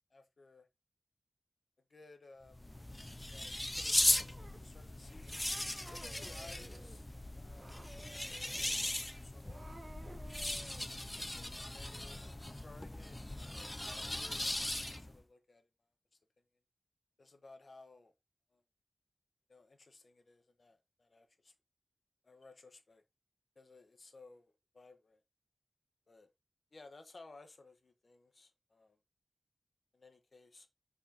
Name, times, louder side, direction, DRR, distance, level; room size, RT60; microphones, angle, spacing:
voice 1, 0.1-0.7 1.9-2.7 3.3-5.4 5.9-7.1 7.3-8.4 8.9-9.6 10.6-13.2 13.5-15.7 16.1-16.4 17.2-18.1 18.5-18.6 19.5-21.5 22.2-23.0 23.5-25.2 26.1-26.3 26.7-29.0 29.9-30.7, left 3 dB, 65° left, 1.2 m, -59 dB
sound 1, 2.5-15.2, left 1 dB, 20° left, 0.5 m, -38 dB
Cat, 3.9-4.6 5.3-7.0 7.5-8.8 9.3-10.9, right 2 dB, 45° right, 1.9 m, -55 dB
6.3 x 5.1 x 2.9 m
cardioid pair, 50°, 0 cm